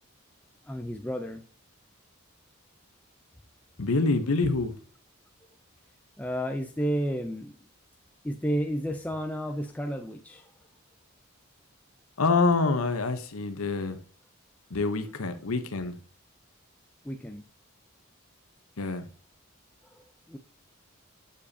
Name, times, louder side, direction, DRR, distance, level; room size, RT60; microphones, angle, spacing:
voice 1, 0.7-1.4 6.2-7.5 8.2-10.5 17.0-17.4 19.9-20.4, equal, 5° left, 0.4 m, -32 dB
voice 2, 3.8-4.8 12.2-14.0 14.7-15.9 18.8-19.1, left 3 dB, 80° left, 0.9 m, -26 dB
7.5 x 6.8 x 2.7 m
head